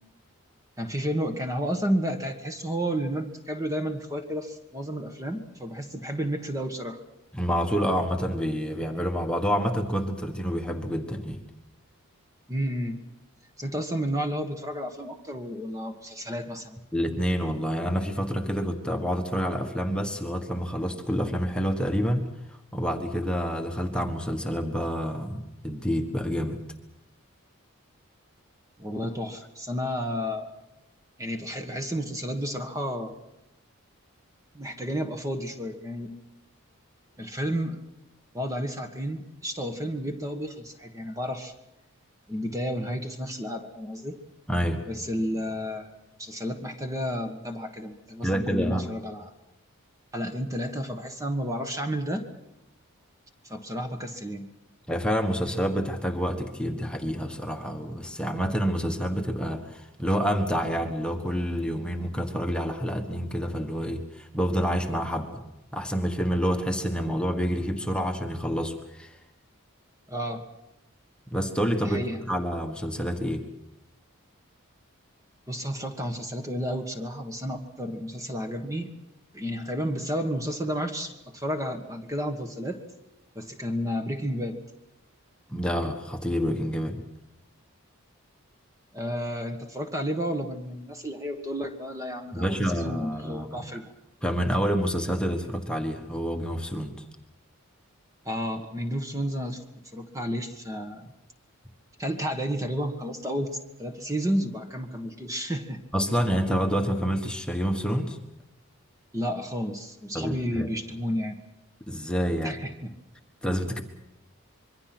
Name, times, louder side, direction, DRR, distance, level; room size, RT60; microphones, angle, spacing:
voice 1, 0.8-7.0 12.5-13.0 13.6-16.8 28.8-30.5 31.2-33.1 34.5-36.1 37.2-37.8 38.3-41.5 42.3-44.2 44.9-45.9 46.2-49.3 50.1-52.3 53.4-54.5 70.1-70.4 71.8-72.2 75.5-78.9 79.3-82.8 83.3-84.6 88.9-93.8 98.2-99.6 99.9-101.1 102.0-105.8 109.1-111.3 112.4-112.9, equal, 15° right, 5 dB, 1.5 m, -31 dB
voice 2, 7.3-11.4 16.9-22.3 22.7-26.6 44.5-44.8 48.2-48.9 54.9-65.3 65.7-69.2 71.3-73.4 85.5-87.0 92.3-93.6 94.2-97.0 105.9-108.2 110.1-110.7 111.9-112.6 113.4-113.8, equal, 5° left, 3 dB, 1.4 m, -28 dB
26.0 x 23.0 x 6.0 m, 0.93 s
head